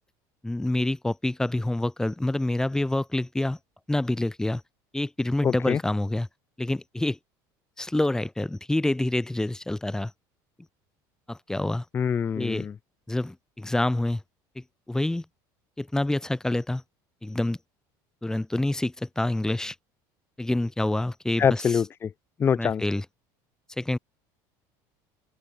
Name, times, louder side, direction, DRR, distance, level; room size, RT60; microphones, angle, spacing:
voice 1, 0.4-3.6 3.9-4.6 4.9-6.3 6.6-7.2 7.8-10.1 11.3-11.8 12.4-12.7 13.1-14.2 14.6-15.2 15.8-16.8 17.2-17.6 18.2-19.8 20.4-21.6 22.6-23.0 23.8-24.0, left 1 dB, 5° left, 2.1 m, -27 dB
voice 2, 5.4-5.8 11.9-12.7 21.4-22.1 22.4-22.8, left 7 dB, 25° left, 0.4 m, -24 dB
open air
cardioid pair, 125°, 9 cm